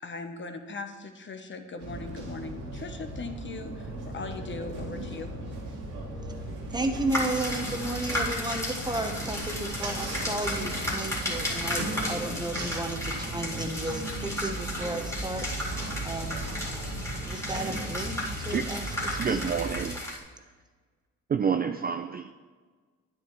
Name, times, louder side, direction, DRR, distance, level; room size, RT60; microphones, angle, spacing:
voice 1, 0.0-5.3, left 3 dB, 40° left, 6 dB, 1.0 m, -39 dB
sound 1, 1.8-19.9, right 2 dB, 75° right, 2.3 m, -37 dB
voice 2, 6.7-15.7 16.0-16.4 17.2-19.4, right 2 dB, 15° right, 5 dB, 1.0 m, -33 dB
sound 2, 7.1-20.2, left 1 dB, 10° left, 2.1 m, -34 dB
voice 3, 19.2-20.0 21.3-22.3, right 7 dB, 30° right, 7 dB, 0.4 m, -28 dB
9.4 x 8.8 x 3.2 m, 1.4 s
cardioid pair, 90°, 30 cm